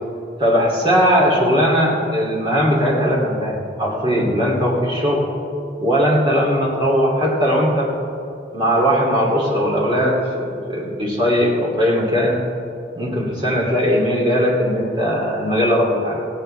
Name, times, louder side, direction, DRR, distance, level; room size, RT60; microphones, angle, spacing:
voice 1, 0.4-5.2 5.8-7.9 8.5-12.4 12.9-16.2, equal, 25° right, -3 dB, 2.8 m, -19 dB
17.5 x 16.5 x 3.4 m, 2.5 s
head